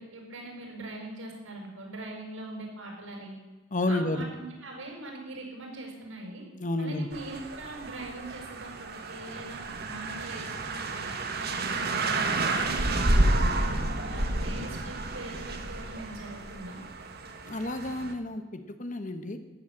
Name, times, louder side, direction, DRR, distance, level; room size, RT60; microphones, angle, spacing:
voice 1, 0.0-3.4 3.9-6.4 6.8-11.0 11.4-16.8, right 2 dB, 85° right, 1 dB, 5.5 m, -42 dB
voice 2, 3.7-4.3 6.5-7.1 17.4-19.4, left 2 dB, 40° left, 8 dB, 1.2 m, -31 dB
sound 1, 7.1-18.1, right 2 dB, 55° right, 1.4 m, -30 dB
14.0 x 10.5 x 7.3 m, 1.2 s
head